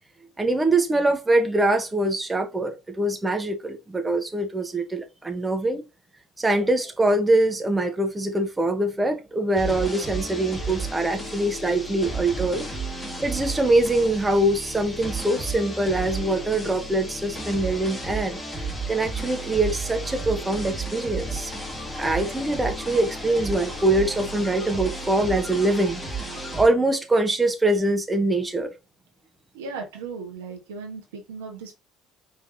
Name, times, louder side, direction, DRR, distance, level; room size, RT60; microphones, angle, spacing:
voice 1, 0.4-5.8 6.4-12.6 13.2-18.4 18.9-21.5 21.9-28.7, right 2 dB, 15° right, 1.2 m, -23 dB
sound 1, 9.5-26.6, right 2 dB, 15° left, 2.4 m, -33 dB
voice 2, 29.5-31.8, right 4 dB, 80° right, 1.3 m, -36 dB
5.3 x 3.5 x 2.7 m
hypercardioid pair, 60°, 0 cm